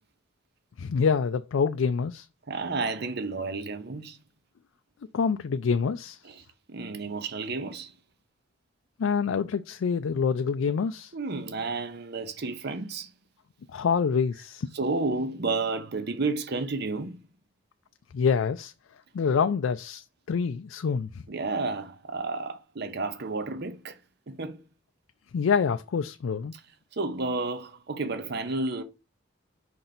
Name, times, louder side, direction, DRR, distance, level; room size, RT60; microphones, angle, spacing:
voice 1, 0.8-2.3 5.1-6.2 9.0-11.1 13.7-14.7 18.1-18.7 19.1-21.2 25.3-26.5, left 6 dB, 80° left, 0.4 m, -26 dB
voice 2, 2.5-4.2 6.2-7.9 11.1-13.1 14.7-17.1 21.3-24.0 24.3-24.6 26.5-26.6 26.9-28.8, right 3 dB, 55° right, 0.8 m, -31 dB
5.2 x 4.0 x 5.9 m
head